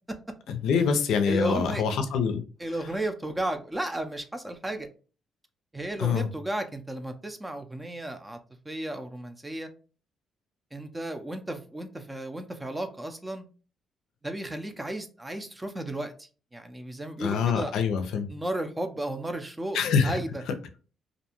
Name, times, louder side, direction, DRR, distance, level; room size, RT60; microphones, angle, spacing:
voice 1, 0.5-2.4 6.0-6.3 17.2-18.3 19.7-20.2, left 6 dB, 85° left, 7 dB, 0.4 m, -25 dB
voice 2, 1.2-1.8 2.6-4.9 5.7-8.4 8.6-9.7 10.7-13.5 14.2-17.8 18.3-20.4, right 1 dB, 15° right, 7 dB, 0.4 m, -34 dB
2.5 x 2.2 x 2.9 m, 0.36 s
cardioid pair, 90°, 0 cm